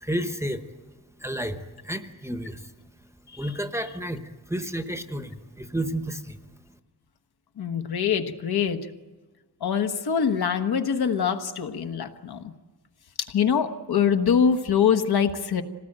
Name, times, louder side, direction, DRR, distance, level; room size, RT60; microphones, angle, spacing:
voice 1, 0.0-0.6 1.2-2.7 3.4-4.2 4.5-6.4, right 1 dB, 5° right, 8 dB, 0.9 m, -31 dB
voice 2, 7.6-8.9 9.6-12.5 13.2-15.6, left 7 dB, 70° left, 7 dB, 1.4 m, -24 dB
26.0 x 18.5 x 8.8 m, 1.3 s
wide cardioid pair, 175°, 40 cm